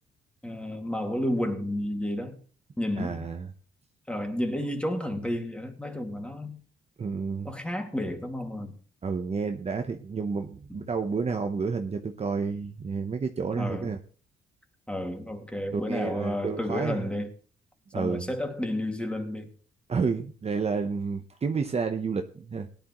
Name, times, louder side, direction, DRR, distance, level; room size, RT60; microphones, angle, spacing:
voice 1, 0.4-2.4 2.8-3.3 4.1-6.6 7.4-8.7 10.7-10.8 13.6-13.9 14.9-17.3 17.9-19.5, left 1 dB, 5° left, 2.1 m, -31 dB
voice 2, 3.0-3.5 7.0-7.5 9.0-14.0 15.7-17.0 17.9-18.3 19.9-22.7, right 5 dB, 30° right, 0.9 m, -30 dB
18.0 x 10.5 x 3.1 m
cardioid pair, 90°, 20 cm